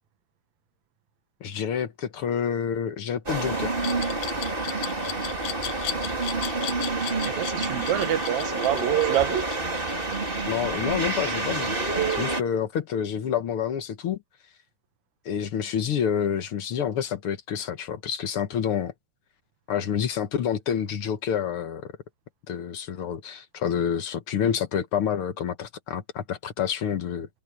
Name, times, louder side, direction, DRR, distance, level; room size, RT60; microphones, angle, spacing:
voice 1, 1.4-3.8 10.5-14.2 15.2-18.9 19.7-21.9 22.5-27.3, left 8 dB, 55° left, 1.7 m, -28 dB
sound 1, 3.3-12.4, right 3 dB, 15° right, 3.1 m, -28 dB
Glass, 3.8-10.7, left 11 dB, 75° left, 2.5 m, -36 dB
voice 2, 7.2-9.5, right 11 dB, 70° right, 2.2 m, -27 dB
omnidirectional pair, 3.6 m